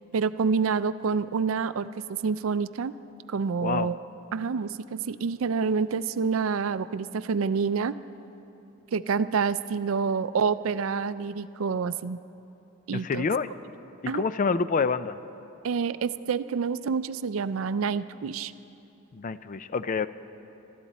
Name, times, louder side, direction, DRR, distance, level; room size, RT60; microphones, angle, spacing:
voice 1, 0.1-2.9 3.3-4.0 4.3-7.9 8.9-12.2 12.9-13.3 14.1-14.2 15.6-18.5, right 5 dB, 75° right, 14 dB, 0.4 m, -27 dB
voice 2, 3.6-3.9 12.9-13.5 14.0-15.2 19.1-20.1, left 5 dB, 40° left, 14 dB, 0.4 m, -27 dB
25.0 x 13.0 x 4.2 m, 3.0 s
head